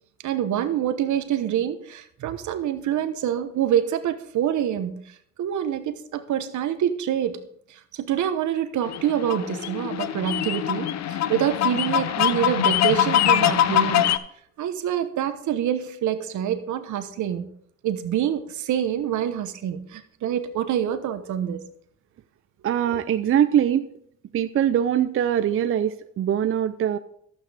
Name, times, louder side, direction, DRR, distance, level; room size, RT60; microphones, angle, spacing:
voice 1, 0.2-5.0 5.4-7.4 7.9-14.1 14.6-17.5 17.8-21.6, right 10 dB, 75° right, 1.0 m, -26 dB
sound 1, 8.9-14.2, left 11 dB, 60° left, 0.6 m, -23 dB
voice 2, 22.6-23.9 24.3-27.0, right 10 dB, 45° right, 0.5 m, -22 dB
12.0 x 8.1 x 3.4 m
cardioid pair, 90°, 30 cm